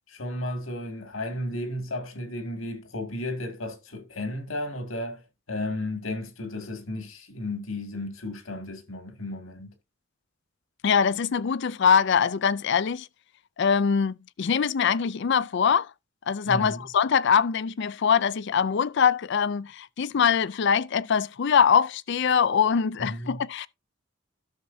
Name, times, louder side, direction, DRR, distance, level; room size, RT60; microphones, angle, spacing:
voice 1, 0.0-9.7 16.5-16.8 23.0-23.4, left 1 dB, 85° left, 2.2 m, -34 dB
voice 2, 10.8-13.1 13.6-15.9 16.3-23.7, left 6 dB, 60° left, 0.4 m, -23 dB
13.0 x 6.7 x 2.7 m
head